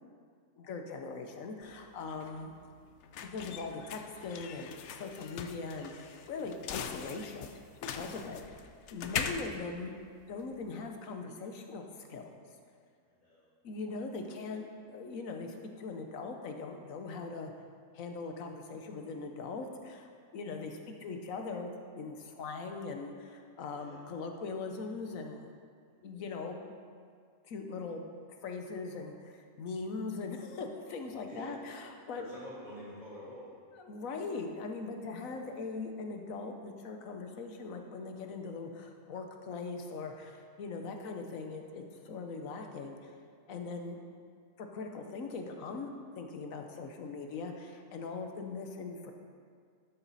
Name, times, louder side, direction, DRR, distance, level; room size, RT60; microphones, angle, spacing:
voice 1, 0.6-2.5 3.2-7.5 7.9-8.6 8.9-10.0 10.3-12.4 13.6-17.5 17.9-21.7 22.0-25.5 26.0-26.7 27.4-28.1 28.4-32.2 33.7-43.1 43.5-44.0 44.6-45.9 46.2-49.1, left 4 dB, 80° left, 4 dB, 1.3 m, -41 dB
sound 1, 1.6-10.7, left 7 dB, 65° left, 0.8 m, -42 dB
voice 2, 13.0-13.5 15.8-15.9 23.7-24.0 25.8-26.1 31.0-31.5 32.1-33.5 35.2-35.4, left 1 dB, 30° left, -9 dB, 3.2 m, -49 dB
12.5 x 7.1 x 4.1 m, 2.1 s
omnidirectional pair, 1.4 m